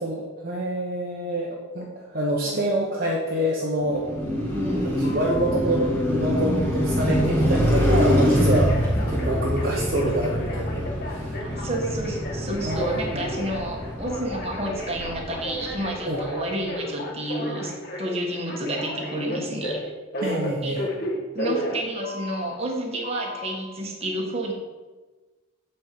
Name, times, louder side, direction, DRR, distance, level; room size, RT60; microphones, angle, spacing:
voice 1, 0.0-4.1 4.8-11.4 12.6-13.2 16.1-16.2 20.2-20.8, right 1 dB, 45° right, -3 dB, 1.1 m, -27 dB
Car passing by, 3.8-16.1, equal, 10° left, 1.7 m, -25 dB
voice 2, 4.3-4.9 8.9-9.0 11.4-17.7 18.0-19.8 20.6-20.8 21.3-24.5, right 1 dB, 30° right, -1 dB, 1.6 m, -30 dB
Telephone, 5.0-5.6 8.4-22.5 23.0-23.5, left 1 dB, 45° left, 1.5 m, -34 dB
9.1 x 4.5 x 7.0 m, 1.3 s
head